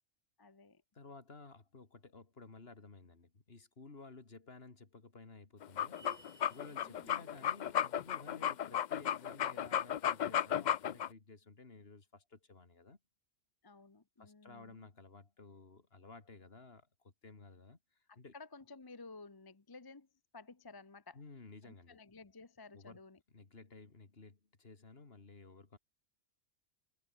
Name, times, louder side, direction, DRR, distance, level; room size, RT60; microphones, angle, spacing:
voice 1, 0.4-0.8 6.7-7.4 13.6-14.9 18.1-20.1 20.3-21.2 21.6-23.2, left 3 dB, 20° left, 0.7 m, -54 dB
voice 2, 0.9-6.0 6.5-13.0 14.2-17.8 18.2-18.3 21.1-22.0 22.7-23.0 23.3-25.8, left 3 dB, 45° left, 2.5 m, -55 dB
sound 1, 5.6-11.1, left 10 dB, 85° left, 0.4 m, -34 dB
sound 2, 5.9-6.8, right 3 dB, 60° right, 3.9 m, -57 dB
omnidirectional pair, 1.4 m